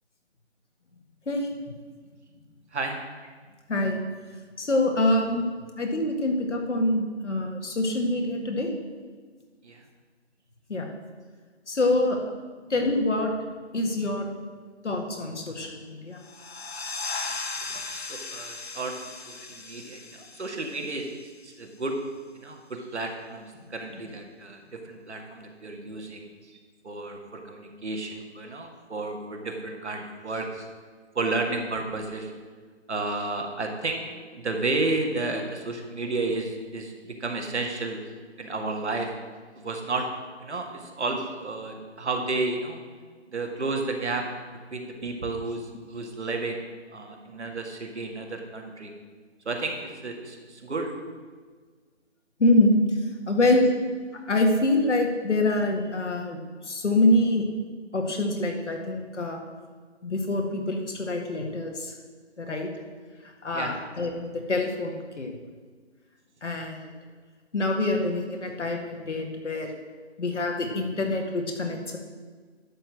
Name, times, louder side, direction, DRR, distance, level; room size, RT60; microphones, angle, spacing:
voice 1, 4.6-5.4 5.8-8.7 10.7-10.9 11.7-12.2 12.7-13.3 13.7-14.3 14.8-16.2 52.4-52.8 53.3-53.7 54.3-56.4 56.7-57.5 57.9-59.4 60.0-61.9 62.4-62.7 63.4-65.3 66.4-66.8 67.5-69.7 70.2-72.0, left 2 dB, 75° left, 2 dB, 2.1 m, -25 dB
sound 1, 16.2-21.5, left 4 dB, 60° left, 1.3 m, -37 dB
voice 2, 17.7-21.9 22.4-30.7 31.2-32.3 32.9-34.0 34.3-38.0 38.4-39.1 39.6-40.1 40.4-42.8 43.3-44.3 44.7-46.6 46.9-48.9 49.5-50.9 53.6-53.7 63.5-63.7, right 3 dB, 70° right, 2 dB, 2.0 m, -32 dB
11.5 x 4.6 x 7.7 m, 1.5 s
hypercardioid pair, 175°, 35 cm